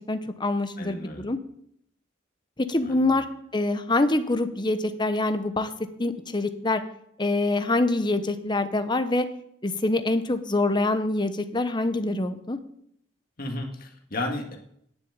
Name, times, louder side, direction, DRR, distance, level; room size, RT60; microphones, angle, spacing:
voice 1, 0.1-1.4 2.7-3.2 3.5-5.7 6.0-6.8 7.2-9.2 9.6-12.6, left 2 dB, 25° left, 9 dB, 0.9 m, -25 dB
voice 2, 0.8-1.3 2.8-3.2 13.4-14.6, left 2 dB, 50° left, 2 dB, 2.0 m, -33 dB
10.0 x 7.2 x 8.9 m, 0.71 s
head